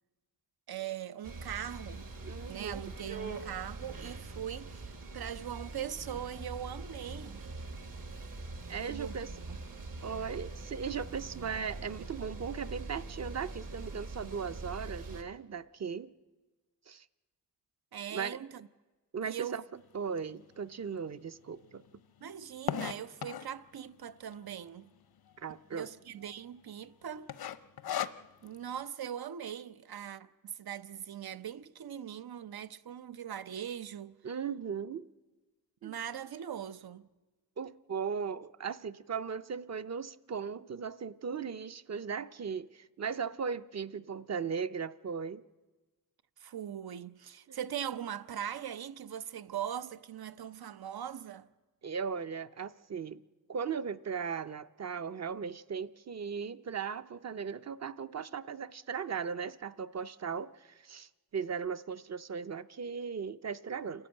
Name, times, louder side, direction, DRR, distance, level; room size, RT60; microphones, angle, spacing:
voice 1, 0.7-2.1 2.5-7.5 8.8-9.1 9.5-9.6 17.9-18.7 19.2-19.6 22.2-24.9 25.7-27.3 28.4-34.1 35.8-37.1 46.4-51.5, right 9 dB, 90° right, 0.7 m, -41 dB
sound 1, 1.2-15.2, right 3 dB, 65° right, 2.0 m, -43 dB
voice 2, 2.2-2.8 8.7-9.3 10.0-16.1 16.9-17.1 18.1-18.4 19.1-19.6 19.9-21.8 25.4-25.9 34.2-35.1 35.8-35.9 37.6-45.4 47.5-47.6 51.8-53.2 53.5-64.1, right 6 dB, 45° right, 0.6 m, -37 dB
sound 2, 20.2-20.3 20.9-21.0 21.1-21.2 21.5-23.6 24.3-24.7 25.0-25.1 25.3-25.4 26.0-26.3 26.6-26.9 27.3-28.6, left 9 dB, 85° left, 0.7 m, -36 dB
28.0 x 12.0 x 8.9 m
wide cardioid pair, 155°, 36 cm